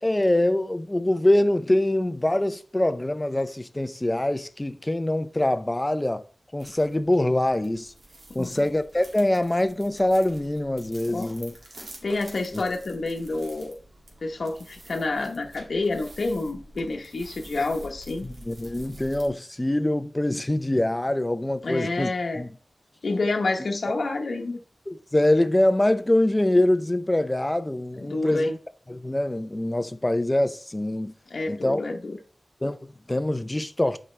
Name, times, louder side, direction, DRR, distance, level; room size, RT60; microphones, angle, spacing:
voice 1, 0.0-6.2 6.5-7.9 8.3-11.5 12.5-12.6 18.2-22.1 22.4-22.5 24.9-28.5 28.9-31.1 31.5-31.8 32.6-34.0, left 1 dB, 20° left, 0.6 m, -24 dB
sound 1, 6.6-19.3, right 1 dB, 60° right, 2.2 m, -48 dB
voice 2, 8.3-8.7 11.1-11.3 11.8-13.7 14.2-18.3 21.6-22.4 23.0-24.6 28.0-28.6 31.3-32.2, left 2 dB, 70° left, 1.0 m, -28 dB
10.5 x 4.9 x 3.3 m
wide cardioid pair, 105°, 0 cm